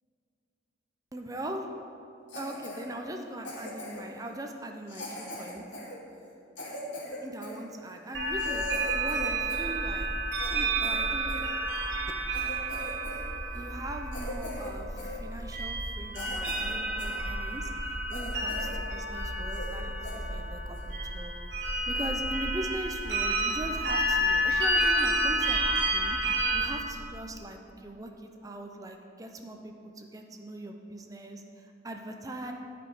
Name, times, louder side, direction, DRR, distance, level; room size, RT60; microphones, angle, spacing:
voice 1, 1.1-1.7 2.3-5.6 7.2-8.7 8.9-10.1 10.5-11.3 13.5-21.3 21.6-26.2 26.5-32.5, right 1 dB, 20° right, 3 dB, 0.5 m, -40 dB
Cough, 2.3-2.8 3.4-4.2 4.9-7.6 8.1-8.2 8.4-9.7 10.0-11.5 12.0-12.1 12.3-13.2 13.5-13.7 14.1-14.7 15.0-15.2 15.7-15.8 16.1-17.2 17.6-17.7 18.1-18.8 19.1-19.2 19.5-19.8 20.0-20.2 20.7-20.9, left 1 dB, 80° left, 1.8 m, -41 dB
sound 1, 8.1-26.7, right 1 dB, 70° right, 1.4 m, -30 dB
11.5 x 5.1 x 4.8 m, 2.6 s
head